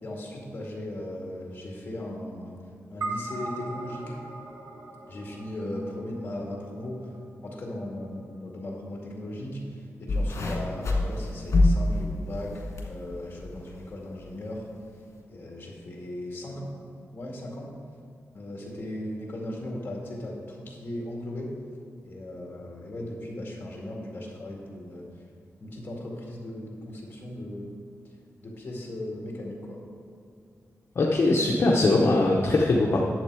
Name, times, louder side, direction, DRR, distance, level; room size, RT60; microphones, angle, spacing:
voice 1, 0.0-2.6 2.9-4.2 5.1-7.0 7.4-14.6 15.3-16.7 17.1-17.7 18.3-21.5 22.0-25.0 25.6-27.8 28.4-29.8, left 1 dB, 35° left, -2 dB, 2.0 m, -37 dB
sound 1, 3.0-7.6, right 3 dB, 65° right, 1.2 m, -39 dB
sound 2, 10.1-12.9 13.3-13.7 14.5-14.6, left 2 dB, 65° left, 1.7 m, -25 dB
voice 2, 31.0-33.0, left 2 dB, 50° left, -2 dB, 0.8 m, -21 dB
10.5 x 7.4 x 4.8 m, 2.4 s
wide cardioid pair, 180°, 5 cm